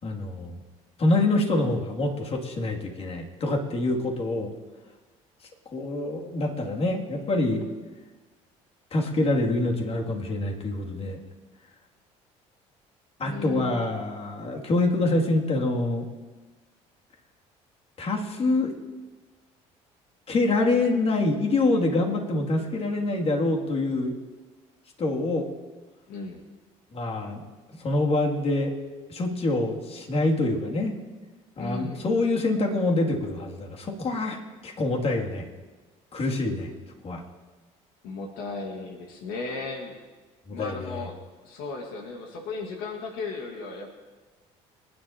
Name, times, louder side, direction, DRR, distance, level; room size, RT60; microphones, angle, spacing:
voice 1, 0.0-0.6 1.0-4.5 5.7-7.6 8.9-11.2 13.2-16.0 18.0-18.7 20.3-24.1 25.0-25.5 26.9-27.4 27.8-28.7 29.1-30.9 31.6-35.4 36.1-36.7 37.0-37.2 40.5-41.1, left 2 dB, 40° left, 0 dB, 2.6 m, -26 dB
voice 2, 13.2-13.9 26.1-26.4 31.5-32.1 38.0-40.0 40.5-41.2 41.4-43.9, left 3 dB, 80° left, 1 dB, 1.8 m, -35 dB
28.0 x 10.5 x 2.9 m, 1.3 s
supercardioid pair, 80°, 15 cm